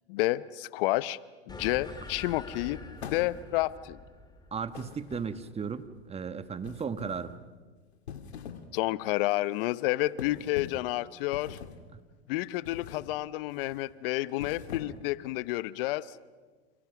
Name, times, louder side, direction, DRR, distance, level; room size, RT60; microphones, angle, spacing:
voice 1, 0.1-1.2 1.5-2.8 3.1-4.0 8.7-11.6 12.3-16.1, left 18 dB, 60° left, 18 dB, 0.9 m, -30 dB
sound 1, 1.5-6.3, left 2 dB, 15° left, 3.6 m, -46 dB
sound 2, 3.0-3.7 4.7-5.6 6.6-7.3 7.9-8.7 9.1-9.3 10.2-10.9 11.3-11.9 12.6-13.1 13.5-13.8 14.3-15.2, left 7 dB, 80° left, 2.2 m, -43 dB
voice 2, 4.5-7.3 11.9-12.0, right 6 dB, 20° right, 11 dB, 1.4 m, -35 dB
29.5 x 28.5 x 6.0 m, 1.4 s
hypercardioid pair, 95°, 32 cm